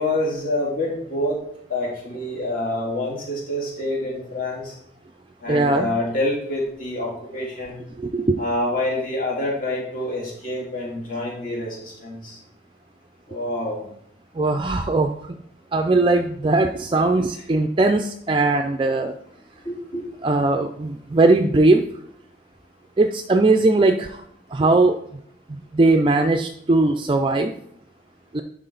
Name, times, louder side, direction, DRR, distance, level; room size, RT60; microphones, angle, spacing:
voice 1, 0.0-4.7 5.4-7.8 8.4-12.4 13.3-13.9 19.6-20.0, left 1 dB, 45° left, -4 dB, 3.0 m, -27 dB
voice 2, 5.5-5.9 8.0-8.4 14.4-15.2 15.7-19.1 20.2-21.8 23.0-24.2 24.5-25.0 25.5-27.5 28.3-28.4, right 2 dB, 25° right, 6 dB, 0.4 m, -19 dB
11.0 x 4.9 x 3.9 m, 0.70 s
head